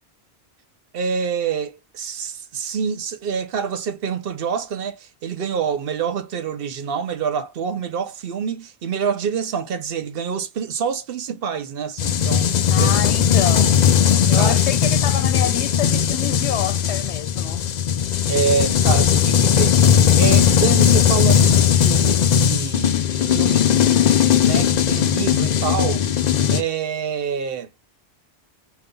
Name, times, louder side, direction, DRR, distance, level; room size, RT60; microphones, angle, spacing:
voice 1, 0.9-12.9 14.3-14.6 18.3-24.0 24.3-26.2 26.5-27.7, right 6 dB, 60° right, 0.9 m, -27 dB
sound 1, 12.0-26.6, left 8 dB, 55° left, 0.5 m, -17 dB
voice 2, 12.7-13.7 14.3-17.6, left 10 dB, 85° left, 0.9 m, -27 dB
5.2 x 2.9 x 2.2 m
omnidirectional pair, 1.1 m